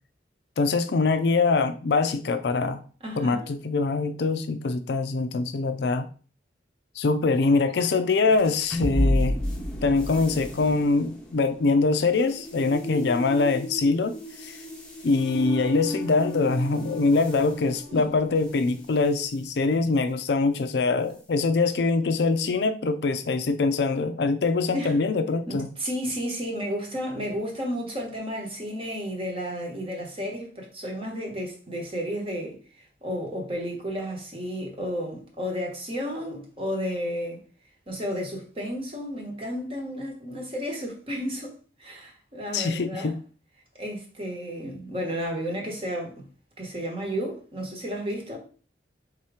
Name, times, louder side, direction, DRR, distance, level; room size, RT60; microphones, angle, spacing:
voice 1, 0.6-2.8 3.2-6.1 7.0-9.4 9.8-14.6 15.0-25.7 42.5-43.1, left 3 dB, 65° left, 0.4 m, -24 dB
voice 2, 3.0-3.5 17.9-18.1 24.7-24.9 25.5-32.6 33.0-37.4 37.9-43.1 43.8-46.3 46.6-48.4, equal, 30° right, 1.1 m, -32 dB
sound 1, 8.3-18.8, left 1 dB, 5° left, 0.8 m, -32 dB
3.7 x 2.8 x 4.8 m
head